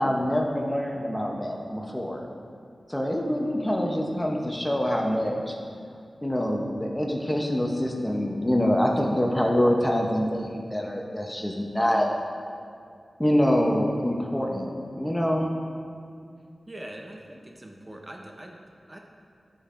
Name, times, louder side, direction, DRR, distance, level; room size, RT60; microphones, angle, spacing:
voice 1, 0.0-2.3 2.9-5.6 6.2-12.1 13.2-15.5, equal, 15° left, 1 dB, 0.7 m, -25 dB
voice 2, 16.7-19.0, right 1 dB, 25° right, 1 dB, 0.6 m, -43 dB
11.5 x 5.2 x 2.5 m, 2.3 s
wide cardioid pair, 85°, 0 cm